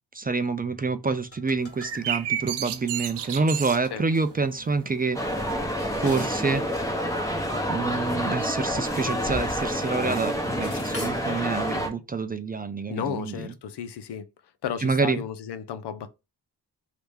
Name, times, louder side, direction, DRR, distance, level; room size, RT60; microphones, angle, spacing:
voice 1, 0.1-5.2 6.0-6.6 7.7-13.5 14.8-15.2, right 4 dB, 25° right, 0.4 m, -27 dB
sound 1, 1.3-2.0 2.6-2.7 3.7-3.8 4.1-4.3 5.5-6.9 7.2-7.3 8.3-10.0 10.3-11.3, left 2 dB, 35° left, 1.3 m, -41 dB
sound 2, 1.6-7.0, right 10 dB, 80° right, 0.5 m, -34 dB
sound 3, 5.1-11.9, equal, 10° left, 0.9 m, -28 dB
voice 2, 12.9-14.3 14.6-16.1, left 8 dB, 80° left, 0.7 m, -33 dB
3.2 x 2.8 x 3.5 m
cardioid pair, 85°, 40 cm